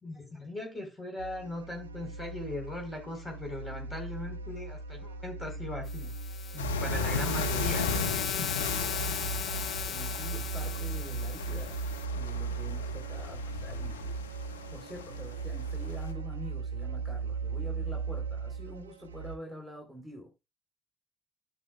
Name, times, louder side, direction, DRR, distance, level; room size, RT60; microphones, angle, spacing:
voice 1, 0.0-6.1 6.5-8.7, left 1 dB, 15° left, 3.9 m, -39 dB
sound 1, 1.2-19.4, right 5 dB, 85° right, 0.4 m, -37 dB
sound 2, 5.9-12.0, left 7 dB, 50° left, 0.9 m, -37 dB
sound 3, 6.6-16.1, left 7 dB, 85° left, 0.6 m, -37 dB
voice 2, 9.9-11.8 12.1-14.2 14.7-20.3, equal, 5° right, 3.4 m, -46 dB
14.0 x 6.3 x 2.3 m
figure-of-eight pair, 45°, 0 cm